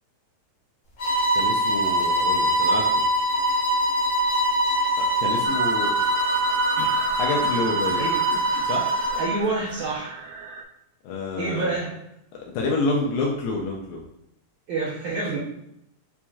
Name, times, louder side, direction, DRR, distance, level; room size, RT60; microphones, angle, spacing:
sound 1, 1.0-9.4, right 1 dB, 55° left, 2.0 m, -23 dB
voice 1, 1.4-3.0 5.0-6.0 7.2-8.1 8.6-8.9 11.0-11.7 12.5-14.0, left 3 dB, 80° left, -1 dB, 2.1 m, -28 dB
sound 2, 5.5-10.6, right 6 dB, 90° right, 2.6 m, -34 dB
sound 3, 6.8-9.7, right 2 dB, 45° right, 1.6 m, -39 dB
voice 2, 9.2-10.1 11.4-11.9 14.7-15.4, right 3 dB, 70° right, -9 dB, 1.7 m, -27 dB
6.0 x 2.9 x 2.3 m, 0.79 s
omnidirectional pair, 4.4 m